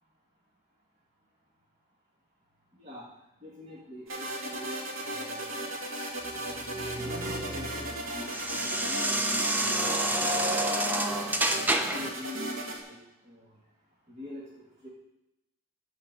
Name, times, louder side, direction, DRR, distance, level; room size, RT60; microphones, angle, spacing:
voice 1, 2.7-3.1 3.4-5.8 6.8-11.3 11.7-13.0 13.2-13.6 14.1-14.9, left 1 dB, 35° right, -6 dB, 1.9 m, -44 dB
sound 1, 4.1-12.8, right 1 dB, 75° right, 2.0 m, -36 dB
sound 2, 6.3-12.1, right 1 dB, 10° right, 0.6 m, -29 dB
13.0 x 4.5 x 7.5 m, 0.91 s
head